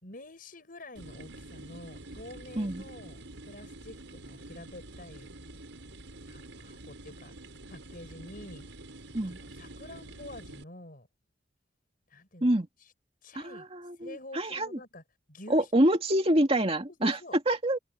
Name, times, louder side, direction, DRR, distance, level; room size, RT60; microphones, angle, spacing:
voice 1, 0.0-5.3 6.3-7.3 7.7-8.7 9.2-11.1 12.1-12.9 13.2-13.6 14.0-15.0 15.3-15.7 16.9-17.4, left 1 dB, 50° left, 6.1 m, -48 dB
sound 1, 1.0-10.6, right 2 dB, 85° right, 5.7 m, -47 dB
voice 2, 13.3-14.8 15.5-17.2 17.5-17.8, right 1 dB, 30° right, 2.3 m, -26 dB
open air
head